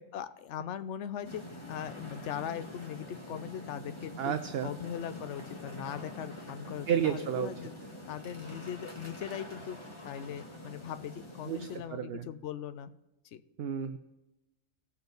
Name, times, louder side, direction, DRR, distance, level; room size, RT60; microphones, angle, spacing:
voice 1, 0.1-1.4 1.7-4.4 4.6-7.7 8.1-9.8 10.0-12.9 13.3-13.4, left 9 dB, 65° left, 12 dB, 0.8 m, -40 dB
sound 1, 1.2-11.8, left 1 dB, 20° left, 1.5 m, -46 dB
voice 2, 4.2-4.7 6.9-7.5 11.5-12.3 13.6-14.0, right 9 dB, 60° right, 9 dB, 0.7 m, -31 dB
18.0 x 7.0 x 3.9 m, 0.98 s
omnidirectional pair, 1.4 m